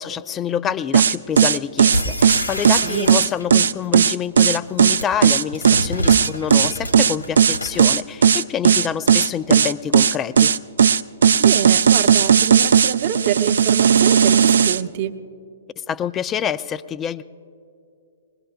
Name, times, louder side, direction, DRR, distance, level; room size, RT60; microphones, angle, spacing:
voice 1, 0.0-10.5 15.9-17.2, left 9 dB, 20° left, 15 dB, 0.4 m, -27 dB
sound 1, 0.9-14.8, right 7 dB, 60° right, 0.3 m, -15 dB
sound 2, 1.9-3.6 4.6-7.9, equal, 85° left, 1.3 m, -28 dB
voice 2, 2.7-3.1 11.4-15.2, right 9 dB, 45° right, 9 dB, 0.8 m, -26 dB
22.0 x 20.5 x 2.3 m, 2.4 s
figure-of-eight pair, 120°, 0 cm